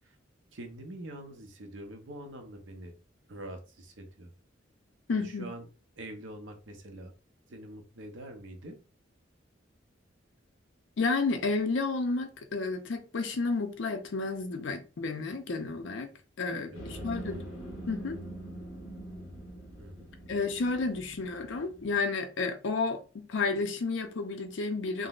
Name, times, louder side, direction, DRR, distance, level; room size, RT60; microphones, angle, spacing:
voice 1, 0.5-2.9 3.3-4.3 5.1-5.6 6.0-7.1 7.5-8.8 16.5-16.8 19.8-20.1, right 1 dB, 70° right, 0.7 m, -44 dB
voice 2, 5.1-5.5 11.0-16.1 16.4-17.4 17.9-18.2 20.3-25.1, left 3 dB, 70° left, 0.5 m, -31 dB
sound 1, 16.7-22.0, right 1 dB, 85° left, 1.0 m, -43 dB
3.7 x 2.0 x 2.3 m
head